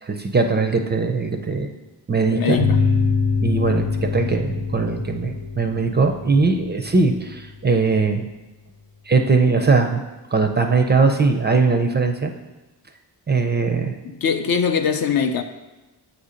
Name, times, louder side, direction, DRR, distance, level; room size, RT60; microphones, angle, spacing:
voice 1, 0.0-1.7 2.1-2.6 3.4-8.3 9.1-10.0 10.3-12.3 13.3-14.0, right 4 dB, 25° right, 0.4 m, -20 dB
voice 2, 2.3-2.8 14.0-15.4, left 6 dB, 55° left, 0.5 m, -21 dB
sound 1, 2.6-7.7, left 4 dB, 90° left, 0.9 m, -24 dB
7.8 x 2.8 x 4.9 m
cardioid pair, 90°, 44 cm